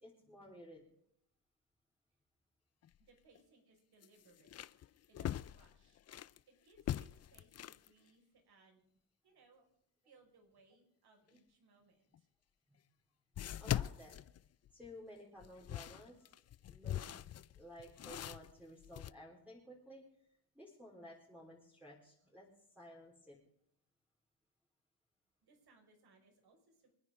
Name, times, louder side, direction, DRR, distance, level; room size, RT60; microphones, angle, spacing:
voice 1, 0.0-0.8 13.6-14.2 14.7-16.2 16.7-17.2 17.6-20.0 20.6-22.5 22.8-23.4, equal, 5° right, -4 dB, 4.0 m, -54 dB
sound 1, 2.8-3.0 3.4-3.5 4.0-6.4 6.8-7.9 12.1-12.2 13.4-14.9 15.4-19.1, left 11 dB, 35° left, 0.4 m, -42 dB
voice 2, 3.0-6.0 6.5-8.9 9.2-9.7 10.0-12.3 25.4-27.0, right 3 dB, 55° right, 2 dB, 5.4 m, -68 dB
27.5 x 9.7 x 3.7 m, 0.71 s
cardioid pair, 100°, 46 cm